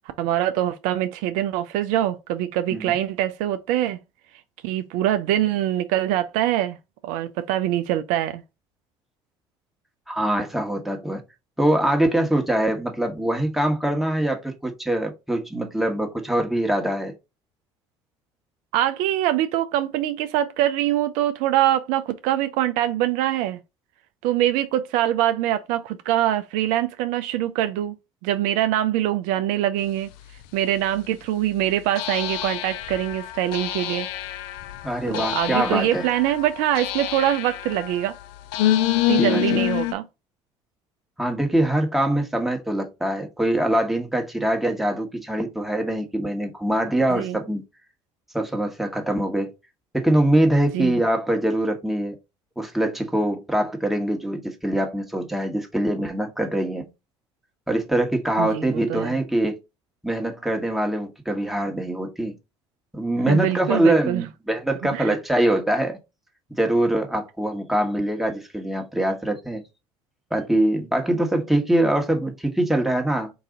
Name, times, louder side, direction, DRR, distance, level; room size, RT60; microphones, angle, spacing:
voice 1, 0.2-4.0 4.6-6.8 7.0-8.4 18.7-23.6 24.2-27.9 28.2-30.1 30.5-34.1 35.1-38.1 39.1-40.1 47.1-47.4 50.7-51.0 58.4-59.2 63.3-64.2 64.9-65.1, right 12 dB, 70° right, 0.4 m, -24 dB
voice 2, 10.1-11.2 11.6-17.1 34.8-36.1 39.2-39.7 41.2-47.6 48.3-49.5 49.9-52.1 52.6-56.9 57.7-59.6 60.0-62.3 62.9-66.0 66.6-69.6 70.3-73.3, right 1 dB, ahead, 1.2 m, -23 dB
sound 1, 30.4-30.5 32.0-39.9, left 14 dB, 70° left, 0.4 m, -27 dB
3.9 x 2.6 x 3.6 m
hypercardioid pair, 65°, 14 cm